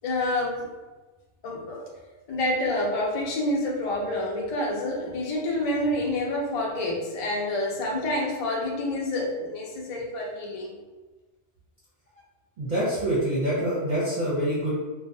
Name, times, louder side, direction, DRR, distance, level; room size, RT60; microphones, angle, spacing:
voice 1, 0.0-0.7 1.4-1.9 2.3-10.7, left 1 dB, 60° left, -1 dB, 0.3 m, -28 dB
voice 2, 12.6-14.7, right 1 dB, 50° right, -8 dB, 0.6 m, -26 dB
2.3 x 2.1 x 2.5 m, 1.2 s
omnidirectional pair, 1.2 m